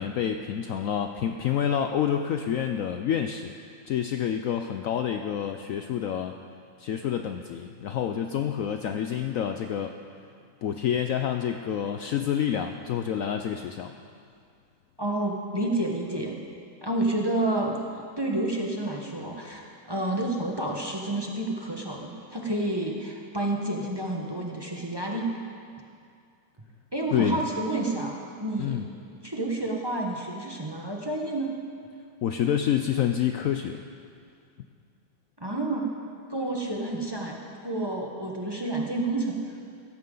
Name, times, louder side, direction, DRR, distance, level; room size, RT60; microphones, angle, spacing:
voice 1, 0.0-3.5 3.9-6.3 6.8-9.9 10.6-13.9 27.1-27.4 28.6-28.9 32.2-33.8, left 9 dB, 85° left, 6 dB, 0.7 m, -28 dB
voice 2, 15.0-16.3 16.8-25.3 26.9-28.8 29.1-31.6 35.4-35.9 36.3-37.4 37.6-39.4, right 2 dB, 15° right, -1 dB, 0.9 m, -29 dB
16.5 x 14.0 x 3.9 m, 2.3 s
omnidirectional pair, 2.0 m